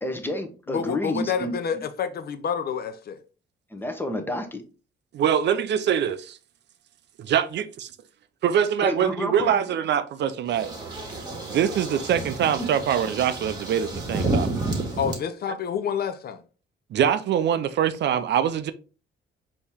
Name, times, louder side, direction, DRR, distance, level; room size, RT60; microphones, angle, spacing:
voice 1, 0.0-1.5 3.7-4.6 8.8-9.5, left 1 dB, 10° left, 0.9 m, -30 dB
voice 2, 0.7-3.2 15.0-16.4, left 7 dB, 50° left, 0.5 m, -28 dB
voice 3, 5.1-6.4 7.2-7.6 8.4-10.7 11.5-14.5 16.9-18.7, right 9 dB, 60° right, 0.4 m, -23 dB
sound 1, 10.5-15.2, right 2 dB, 20° right, 1.5 m, -30 dB
4.4 x 2.9 x 3.4 m
cardioid pair, 90°, 20 cm